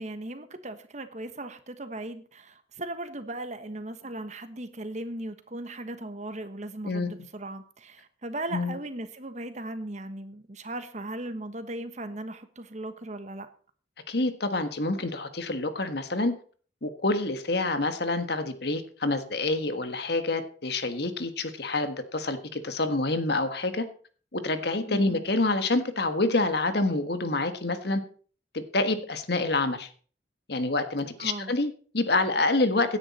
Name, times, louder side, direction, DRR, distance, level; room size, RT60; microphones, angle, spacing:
voice 1, 0.0-13.5 24.9-25.2 31.2-31.5, right 1 dB, 40° right, 1.3 m, -37 dB
voice 2, 14.1-16.3 16.8-23.8 24.3-28.0 28.5-29.9 30.5-33.0, left 2 dB, 60° left, 1.5 m, -27 dB
17.0 x 10.0 x 4.3 m
head